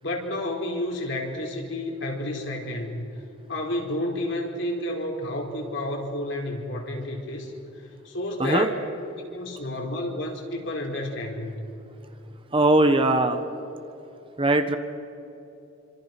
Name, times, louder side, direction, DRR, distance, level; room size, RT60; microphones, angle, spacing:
voice 1, 0.0-3.0 3.5-7.5 8.0-8.7 9.1-11.6, left 1 dB, 60° left, 0 dB, 4.6 m, -30 dB
voice 2, 12.5-13.4 14.4-14.8, right 2 dB, 25° right, 7 dB, 1.4 m, -20 dB
27.0 x 26.0 x 6.1 m, 2.9 s
head